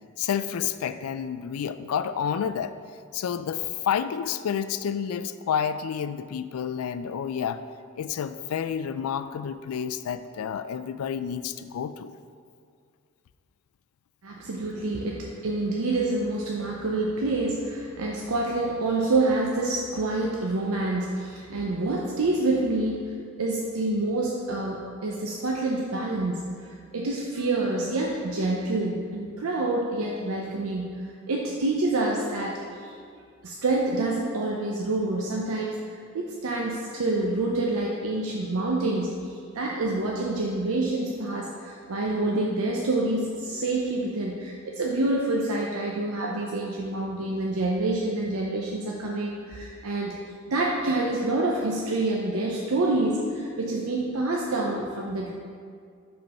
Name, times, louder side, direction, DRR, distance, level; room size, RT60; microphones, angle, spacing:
voice 1, 0.2-2.8 3.1-7.6 8.0-12.1, left 8 dB, 85° left, 12 dB, 0.3 m, -29 dB
voice 2, 14.2-26.7 26.9-32.9 33.4-35.8 36.1-39.3 39.5-50.2 50.5-55.3, right 2 dB, 85° right, -2 dB, 0.6 m, -27 dB
5.3 x 4.4 x 5.3 m, 2.2 s
head